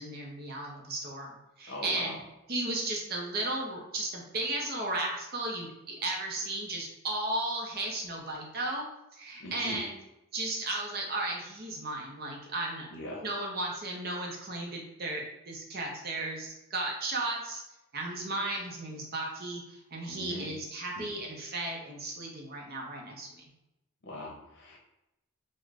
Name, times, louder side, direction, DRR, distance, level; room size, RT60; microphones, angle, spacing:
voice 1, 0.0-2.2 2.5-8.9 9.1-9.9 10.3-12.9 13.2-17.6 17.9-23.5, right 2 dB, 45° right, 0 dB, 0.6 m, -35 dB
voice 2, 1.7-2.2 9.4-9.8 12.9-13.2 20.1-20.5 21.0-21.1 24.0-24.8, left 1 dB, 50° left, 0 dB, 0.7 m, -41 dB
4.8 x 2.1 x 2.4 m, 0.92 s
head